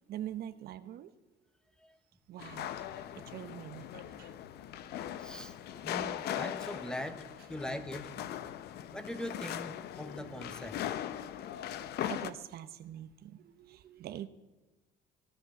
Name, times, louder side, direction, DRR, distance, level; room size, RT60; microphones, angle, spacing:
voice 1, 0.1-1.1 2.3-2.7 3.1-4.4 4.6-5.1 5.6-5.8 12.1-14.3, right 11 dB, 65° right, 11 dB, 0.9 m, -44 dB
sound 1, 2.4-12.3, left 11 dB, 75° left, 0.9 m, -40 dB
voice 2, 5.1-7.2 7.5-8.1 8.9-10.8, equal, 5° left, 10 dB, 1.2 m, -41 dB
17.0 x 11.0 x 7.0 m, 1.1 s
cardioid pair, 110°, 17 cm